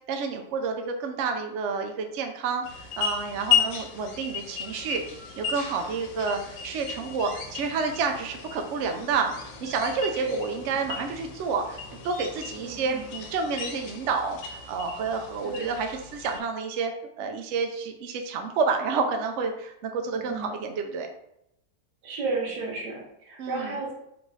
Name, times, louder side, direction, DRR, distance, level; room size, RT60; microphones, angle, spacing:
voice 1, 0.1-14.4 14.7-16.9 17.2-21.1 23.4-23.7, right 5 dB, 85° right, 5 dB, 0.6 m, -29 dB
sound 1, 2.6-16.4, left 7 dB, 85° left, 1.4 m, -34 dB
voice 2, 12.6-13.0 15.4-15.7 20.1-20.5 22.0-23.9, right 3 dB, 70° right, -2 dB, 1.6 m, -33 dB
3.4 x 3.2 x 3.9 m, 0.78 s
omnidirectional pair, 2.0 m